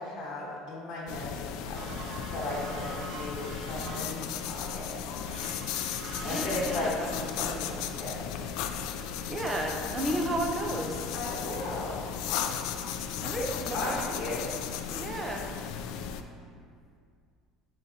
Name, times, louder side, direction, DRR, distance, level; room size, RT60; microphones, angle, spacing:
voice 1, 0.0-5.5 6.2-8.4 11.1-12.0 13.3-14.5, left 2 dB, 45° left, -5 dB, 1.3 m, -36 dB
pencil sketch, 1.1-16.2, left 8 dB, 75° left, 0.4 m, -36 dB
sound 1, 1.7-4.4 5.2-6.8, right 3 dB, 50° right, 0.7 m, -42 dB
voice 2, 6.2-7.1 9.3-11.0 13.2-14.1 14.9-15.5, right 1 dB, 15° right, 1 dB, 0.7 m, -33 dB
9.6 x 3.9 x 2.8 m, 2.2 s
cardioid pair, 125°, 0 cm